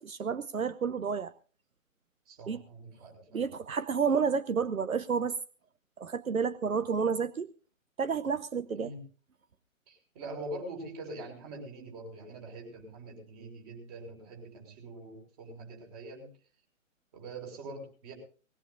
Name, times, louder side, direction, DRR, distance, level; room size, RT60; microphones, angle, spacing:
voice 1, 0.0-1.3 2.5-2.6 3.3-5.4 6.0-7.5 8.0-8.9, right 6 dB, 80° right, 14 dB, 0.9 m, -30 dB
voice 2, 2.3-3.4 8.7-9.0 9.9-16.3 17.1-18.1, right 2 dB, 25° right, 2 dB, 5.9 m, -44 dB
20.5 x 18.0 x 2.6 m, 0.37 s
figure-of-eight pair, 140°, 41 cm